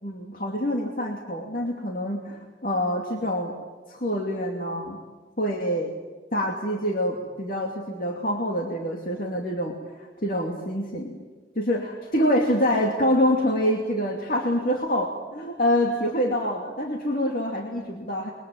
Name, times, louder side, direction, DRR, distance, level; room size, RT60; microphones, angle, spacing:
voice 1, 0.0-3.5 3.9-5.0 5.4-5.9 6.3-11.2 11.6-18.3, equal, 50° left, 0 dB, 2.7 m, -26 dB
27.0 x 22.5 x 9.2 m, 1.3 s
head